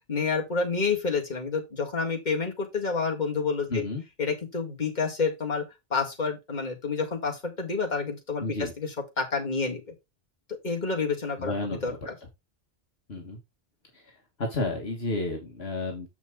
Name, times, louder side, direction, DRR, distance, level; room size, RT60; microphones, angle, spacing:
voice 1, 0.1-3.8 4.2-5.6 5.9-9.8 10.5-12.1, left 4 dB, 40° left, 2.2 m, -29 dB
voice 2, 3.7-4.0 8.4-8.7 11.4-12.0 13.1-13.4 13.9-14.1 14.4-16.1, left 2 dB, 65° left, 1.7 m, -31 dB
7.4 x 5.9 x 3.8 m
omnidirectional pair, 1.1 m